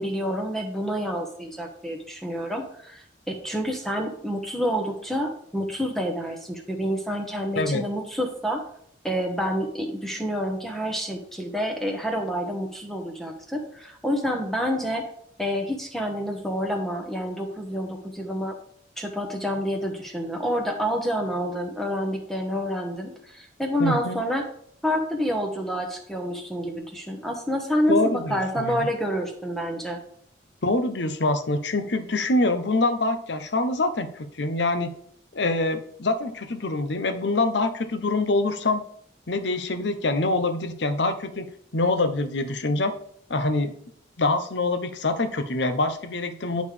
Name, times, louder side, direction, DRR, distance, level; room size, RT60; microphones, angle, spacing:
voice 1, 0.0-8.6 9.0-15.0 15.4-18.6 19.0-24.4 24.8-30.0, equal, ahead, 1 dB, 1.0 m, -28 dB
voice 2, 23.8-24.2 27.9-28.9 30.6-34.9 35.3-38.8 39.3-41.5 41.7-42.9 43.3-43.7 44.2-46.6, left 2 dB, 70° left, 8 dB, 0.8 m, -25 dB
10.5 x 5.1 x 3.4 m, 0.65 s
head